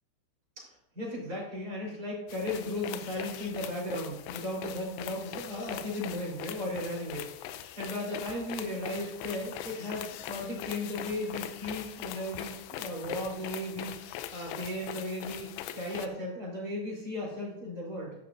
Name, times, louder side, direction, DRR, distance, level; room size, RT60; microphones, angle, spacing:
voice 1, 0.9-15.5 15.7-18.2, left 1 dB, 20° right, -5 dB, 3.8 m, -36 dB
sound 1, 2.3-16.1, left 11 dB, 80° left, 2.6 m, -41 dB
13.5 x 10.5 x 2.7 m, 0.88 s
omnidirectional pair, 5.6 m